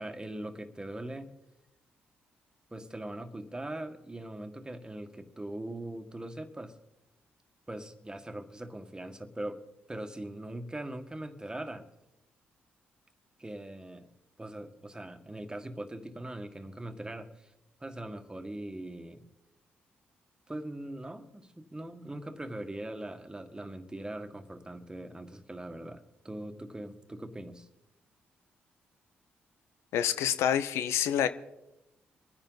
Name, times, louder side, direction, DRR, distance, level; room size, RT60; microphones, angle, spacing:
voice 1, 0.0-1.3 2.7-6.7 7.7-9.6 9.9-11.9 13.4-14.1 14.4-17.5 17.8-19.3 20.5-27.7, right 1 dB, 15° right, 8 dB, 1.7 m, -41 dB
voice 2, 29.9-31.3, left 10 dB, 80° left, 12 dB, 0.7 m, -27 dB
24.5 x 10.0 x 4.1 m, 0.92 s
supercardioid pair, 50°, 4 cm